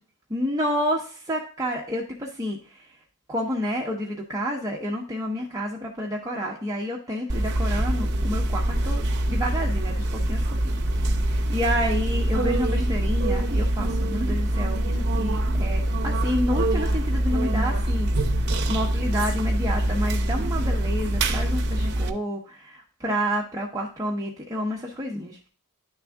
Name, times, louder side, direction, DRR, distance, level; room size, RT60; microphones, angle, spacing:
voice 1, 0.3-2.9 3.3-10.4 10.9-18.4 18.7-25.5, equal, 15° right, -2 dB, 0.7 m, -29 dB
sound 1, 7.3-22.1, right 1 dB, 50° right, 0.8 m, -24 dB
10.5 x 3.5 x 3.4 m, 0.40 s
head